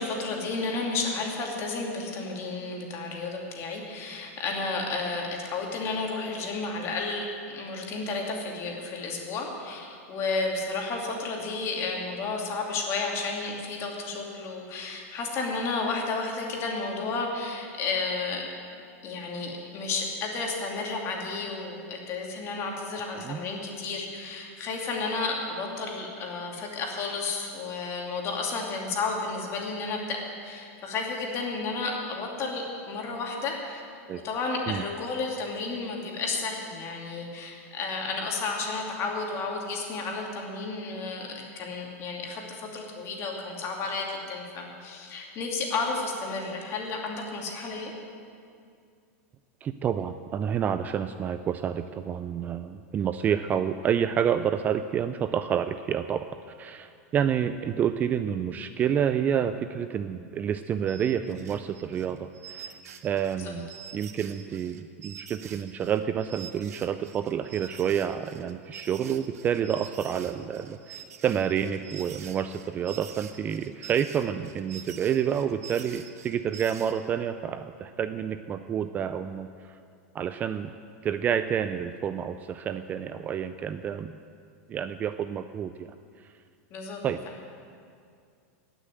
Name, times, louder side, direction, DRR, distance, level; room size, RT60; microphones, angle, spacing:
voice 1, 0.0-18.5 19.0-33.8 34.2-47.9 63.4-63.5 86.7-87.0, left 3 dB, 35° left, 0 dB, 2.6 m, -32 dB
voice 2, 49.6-56.3 56.6-62.8 63.0-79.8 80.1-80.7 81.0-84.2 84.7-85.9 86.2-86.3 87.0-87.2, right 8 dB, 20° right, 10 dB, 0.4 m, -29 dB
sound 1, 60.9-77.1, right 8 dB, 90° right, 1.1 m, -46 dB
18.0 x 6.4 x 9.1 m, 2.3 s
supercardioid pair, 145°, 8 cm